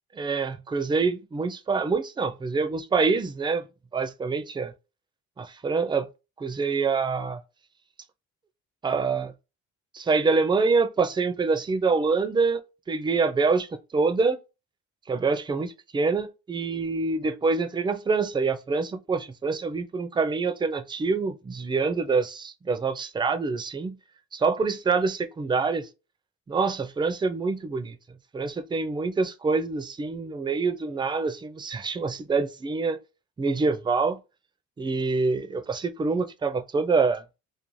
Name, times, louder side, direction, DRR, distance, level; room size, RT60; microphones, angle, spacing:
voice 1, 0.2-3.6 3.9-4.7 5.4-6.1 6.4-7.4 8.8-9.3 9.9-12.6 12.9-14.4 15.1-24.0 24.3-25.9 26.5-28.0 28.3-33.0 33.4-34.2 34.8-37.2, right 4 dB, 15° right, 0.4 m, -26 dB
2.5 x 2.2 x 3.0 m
cardioid pair, 90°, 30 cm